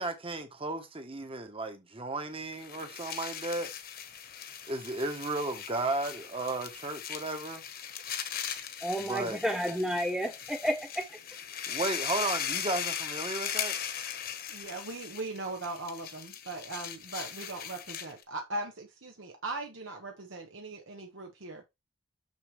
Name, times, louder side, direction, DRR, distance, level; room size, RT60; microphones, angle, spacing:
voice 1, 0.0-3.7 4.7-7.6 9.0-9.4 11.7-13.8, right 2 dB, 30° right, 1.1 m, -34 dB
sound 1, 2.4-18.2, left 8 dB, 50° left, 1.1 m, -39 dB
voice 2, 8.8-11.1, equal, 5° right, 0.5 m, -31 dB
voice 3, 14.5-21.6, right 2 dB, 75° right, 1.2 m, -39 dB
6.7 x 6.4 x 3.2 m
head